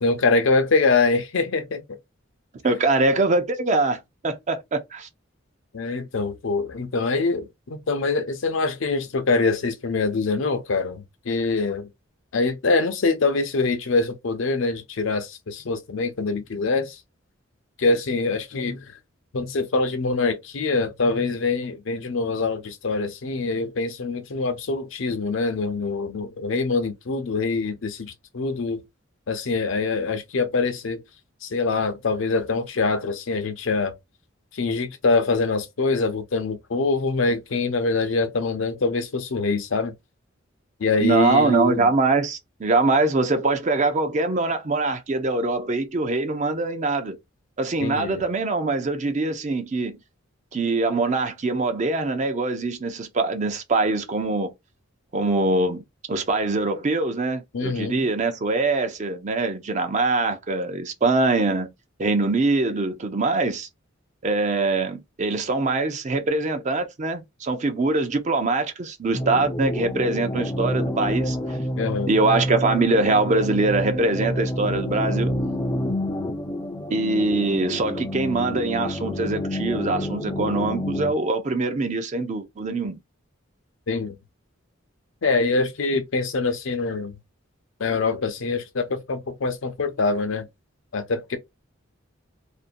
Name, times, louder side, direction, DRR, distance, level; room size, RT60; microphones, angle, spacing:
voice 1, 0.0-1.8 5.7-11.9 12.3-17.0 17.8-18.9 19.3-28.8 29.3-31.0 31.4-33.9 34.5-39.9 40.8-41.9 47.8-48.2 57.5-58.0 71.8-72.1 83.9-84.1 85.2-87.2 87.8-90.5 90.9-91.4, left 3 dB, 70° left, 0.6 m, -24 dB
voice 2, 2.6-5.1 41.0-47.2 47.6-50.0 50.5-54.5 55.1-55.8 56.1-61.7 62.0-63.7 64.2-71.4 72.1-75.3 76.9-83.0, right 3 dB, 35° right, 0.5 m, -23 dB
sound 1, 69.1-81.1, equal, 20° left, 0.4 m, -28 dB
2.5 x 2.1 x 2.5 m
head